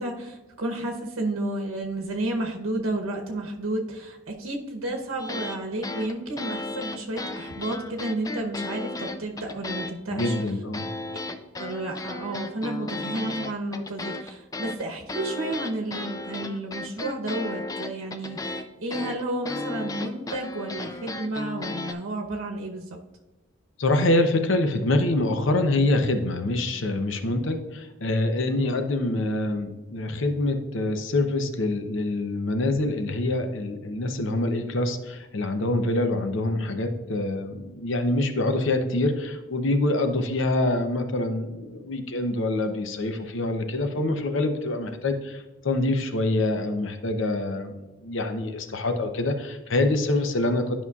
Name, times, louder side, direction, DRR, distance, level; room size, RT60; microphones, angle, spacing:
voice 1, 0.0-10.4 11.6-23.0, right 1 dB, 85° right, 1 dB, 0.9 m, -31 dB
sound 1, 5.2-5.6 5.8-9.9 10.2-21.9, left 2 dB, 15° left, 0.3 m, -34 dB
voice 2, 10.1-10.9 23.8-47.7 48.0-50.8, left 2 dB, 65° left, 7 dB, 0.7 m, -25 dB
11.0 x 5.4 x 2.4 m, 1.1 s
head